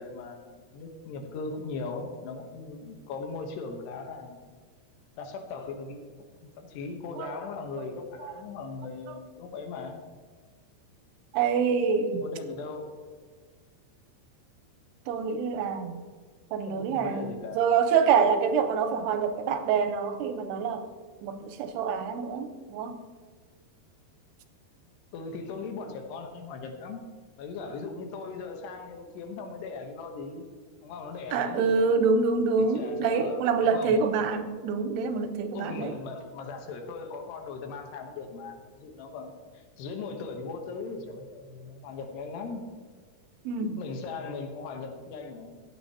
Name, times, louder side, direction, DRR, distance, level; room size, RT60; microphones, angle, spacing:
voice 1, 0.0-4.4 5.2-6.0 6.6-10.0 12.2-12.9 16.5-17.7 25.1-27.0 27.4-30.4 30.8-31.8 32.6-34.0 35.5-42.7 43.8-45.7, left 4 dB, 85° left, 4 dB, 3.2 m, -39 dB
voice 2, 11.3-12.2 15.1-16.0 16.5-17.3 17.6-20.9 21.2-23.0 31.3-35.9 43.5-43.8, right 5 dB, 85° right, 8 dB, 2.7 m, -26 dB
15.5 x 9.6 x 2.9 m, 1.5 s
omnidirectional pair, 4.7 m